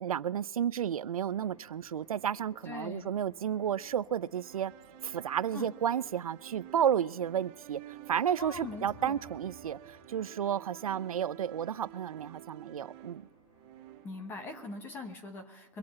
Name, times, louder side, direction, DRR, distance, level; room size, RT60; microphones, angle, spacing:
voice 1, 0.0-4.7 5.0-13.2, right 9 dB, 80° right, 0.5 m, -32 dB
sound 1, 1.2-14.3, left 2 dB, 75° left, 4.4 m, -63 dB
sound 2, 1.2-15.2, right 15 dB, 20° right, 0.5 m, -52 dB
voice 2, 2.6-3.1 5.5-5.7 8.4-9.2 14.0-15.8, left 3 dB, 10° left, 1.1 m, -42 dB
sound 3, 8.2-10.5, left 3 dB, 45° left, 3.1 m, -56 dB
24.0 x 8.7 x 4.3 m
hypercardioid pair, 160°, 18 cm